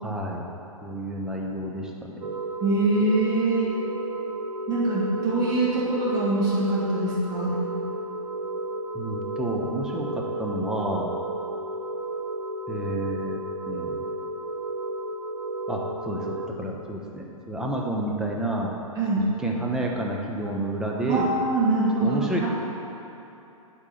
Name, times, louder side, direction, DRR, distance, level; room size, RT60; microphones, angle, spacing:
voice 1, 0.0-0.4 0.8-2.3 8.9-11.1 12.7-13.4 13.7-14.0 15.7-18.7 19.2-21.3 22.0-22.5, right 1 dB, 5° right, -2 dB, 0.9 m, -30 dB
sound 1, 2.2-16.5, right 2 dB, 85° right, 0.8 m, -33 dB
voice 2, 2.6-3.7 4.7-7.6 19.0-19.3 21.1-22.5, right 2 dB, 20° right, -8 dB, 2.0 m, -24 dB
8.5 x 4.5 x 7.2 m, 2.9 s
figure-of-eight pair, 115°, 18 cm